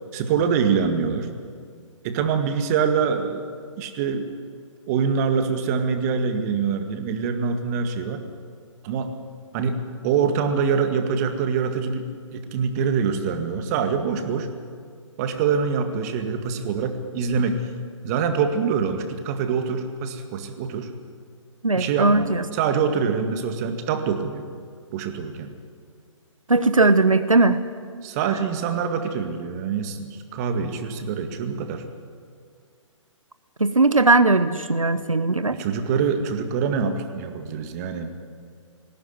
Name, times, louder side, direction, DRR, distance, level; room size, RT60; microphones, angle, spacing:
voice 1, 0.1-1.3 2.0-3.4 3.8-4.2 4.9-8.2 8.8-9.2 9.5-12.0 12.3-14.5 15.2-17.7 18.0-20.9 21.8-24.4 24.9-25.5 28.0-31.9 35.5-38.1, right 6 dB, 30° right, 7 dB, 2.0 m, -25 dB
voice 2, 21.6-22.4 26.5-27.6 33.6-35.6, right 3 dB, 85° right, 12 dB, 1.0 m, -18 dB
20.0 x 16.5 x 9.6 m, 2.1 s
figure-of-eight pair, 130°, 17 cm